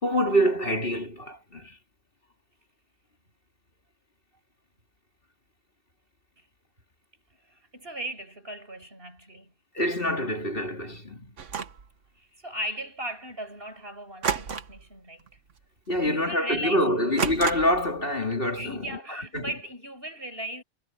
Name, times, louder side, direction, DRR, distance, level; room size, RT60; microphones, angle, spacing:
voice 1, 0.0-1.8 9.7-11.3 15.9-18.7 19.1-19.5, equal, 50° left, 3.2 m, -26 dB
voice 2, 7.5-9.5 12.2-15.3 16.0-16.9 18.4-20.6, right 1 dB, 55° right, 6.8 m, -37 dB
sound 1, 11.4-11.9 14.2-14.9 15.2-15.5 15.9-16.0 17.2-17.9, right 6 dB, 90° right, 1.6 m, -31 dB
omnidirectional pair, 1.2 m